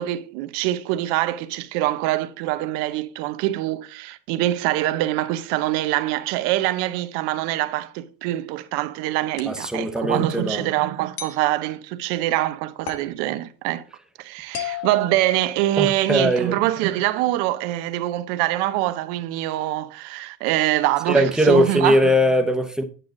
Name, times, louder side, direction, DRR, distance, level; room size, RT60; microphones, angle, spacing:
voice 1, 0.0-13.8 14.2-22.2, right 15 dB, 75° right, 0.9 m, -24 dB
sound 1, 9.4-9.6 11.2-11.5 12.9-13.2 14.5-16.0, left 9 dB, 35° left, 1.1 m, -34 dB
voice 2, 9.5-10.6 15.8-16.6 21.1-22.8, equal, ahead, 0.6 m, -20 dB
9.3 x 6.4 x 3.8 m
cardioid pair, 170°, 40 cm